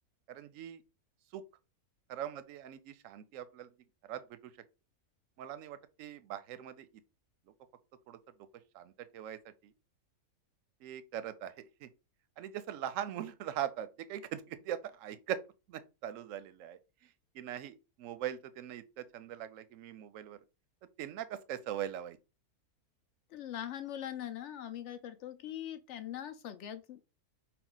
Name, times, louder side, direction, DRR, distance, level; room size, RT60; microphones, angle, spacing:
voice 1, 0.3-0.8 1.3-1.4 2.1-3.7 4.1-4.5 5.4-6.9 8.1-8.2 8.7-9.7 10.8-11.9 12.4-15.4 15.7-16.8 17.3-20.4 21.0-22.2, right 10 dB, 65° right, 0.9 m, -41 dB
voice 2, 23.3-27.0, left 10 dB, 65° left, 0.7 m, -42 dB
5.8 x 2.3 x 3.9 m
omnidirectional pair, 1.6 m